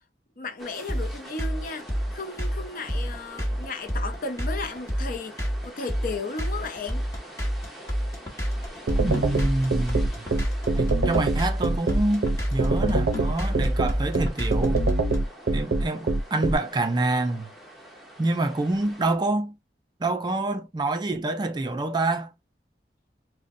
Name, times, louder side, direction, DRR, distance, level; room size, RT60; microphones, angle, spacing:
voice 1, 0.4-7.1, left 3 dB, 50° left, 0.5 m, -35 dB
sound 1, 0.6-19.2, right 1 dB, ahead, 0.7 m, -45 dB
sound 2, 0.9-15.2, equal, 20° left, 1.0 m, -28 dB
sound 3, 8.9-16.6, right 2 dB, 80° right, 0.5 m, -23 dB
voice 2, 9.0-10.1 10.8-14.8 15.5-17.5 18.2-19.6 20.0-22.3, right 2 dB, 25° right, 0.3 m, -27 dB
3.8 x 2.1 x 2.5 m
head